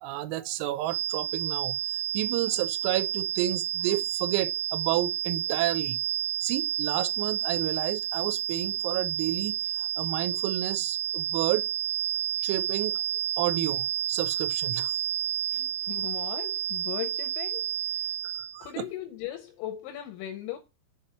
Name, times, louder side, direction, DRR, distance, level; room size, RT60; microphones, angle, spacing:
voice 1, 0.0-1.8 2.1-6.0 6.4-11.7 12.4-13.0 13.4-14.9 15.5-15.7 18.5-18.9, right 15 dB, 85° right, 3.3 m, -31 dB
sound 1, 0.9-18.6, right 10 dB, 70° right, 3.0 m, -30 dB
voice 2, 15.8-18.2 18.6-20.6, left 12 dB, 80° left, 2.7 m, -38 dB
7.0 x 4.9 x 4.4 m
omnidirectional pair, 6.0 m